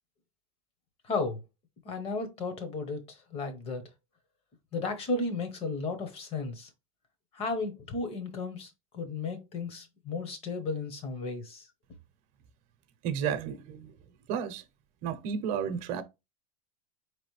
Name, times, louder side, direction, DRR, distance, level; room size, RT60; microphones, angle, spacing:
voice 1, 1.0-1.4 1.8-3.9 4.7-6.7 7.3-11.7, left 3 dB, 35° left, 1.2 m, -34 dB
voice 2, 13.0-14.0 14.3-14.6 15.0-16.0, right 7 dB, 50° right, 0.8 m, -32 dB
5.0 x 3.3 x 3.2 m
supercardioid pair, 150°, 18 cm